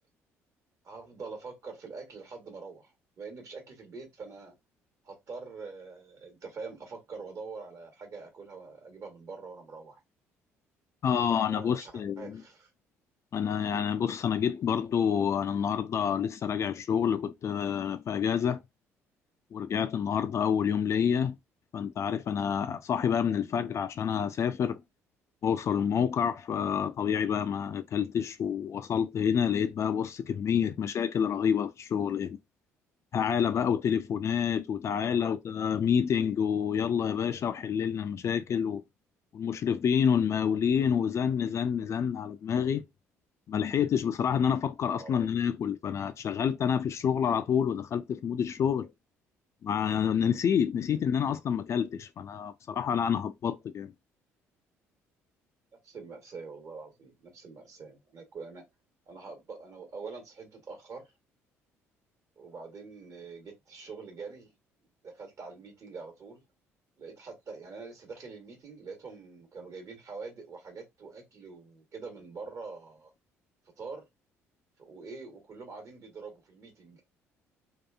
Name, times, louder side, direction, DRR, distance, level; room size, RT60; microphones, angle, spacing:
voice 1, 0.8-4.5 5.0-10.0 11.5-12.7 23.4-23.8 34.9-35.3 44.9-45.3 50.8-51.0 55.8-58.6 59.1-61.1 62.4-64.5 65.0-66.4 67.0-73.1 73.8-74.0 74.8-77.0, right 4 dB, 45° right, 1.1 m, -44 dB
voice 2, 11.0-12.4 13.3-18.6 19.5-21.4 21.7-24.8 25.4-32.4 33.1-38.8 39.3-42.8 43.5-48.9 49.6-53.9, left 7 dB, 40° left, 0.3 m, -28 dB
2.8 x 2.3 x 2.3 m
figure-of-eight pair, 50°, 7 cm